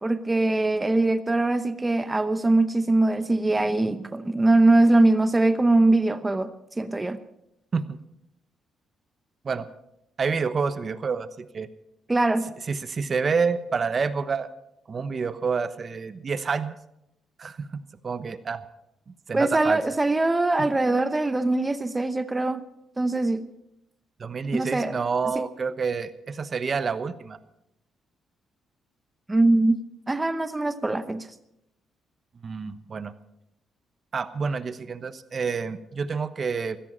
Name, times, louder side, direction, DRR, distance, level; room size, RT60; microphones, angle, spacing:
voice 1, 0.0-7.2 12.1-12.5 19.3-22.6 23.0-23.4 24.5-25.0 29.3-29.8 30.1-31.3, right 2 dB, 15° right, 11 dB, 0.9 m, -22 dB
voice 2, 10.2-11.7 12.7-14.5 14.9-16.7 17.4-18.6 19.3-19.8 20.6-20.7 24.2-27.4 32.4-33.1 34.1-36.8, right 5 dB, 40° right, 13 dB, 1.1 m, -28 dB
16.0 x 14.0 x 5.5 m, 0.81 s
cardioid pair, 90°, 0 cm